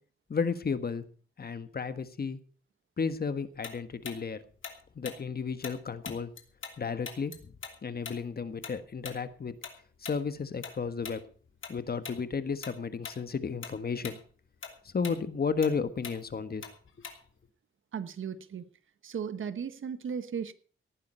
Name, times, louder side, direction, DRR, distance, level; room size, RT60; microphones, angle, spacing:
voice 1, 0.3-1.0 1.4-2.4 3.0-4.4 4.9-6.3 6.8-7.6 7.8-9.6 10.0-11.2 11.7-14.2 14.8-16.7, left 5 dB, 45° left, 11 dB, 1.5 m, -33 dB
Tick-tock, 3.6-6.8 7.0-11.8 12.0-12.2 12.6-13.2 13.5-17.5, left 6 dB, 65° left, 2.9 m, -43 dB
voice 2, 17.9-18.6 19.0-20.5, right 7 dB, 70° right, 12 dB, 1.3 m, -36 dB
18.0 x 9.6 x 5.5 m, 0.41 s
cardioid pair, 95°, 21 cm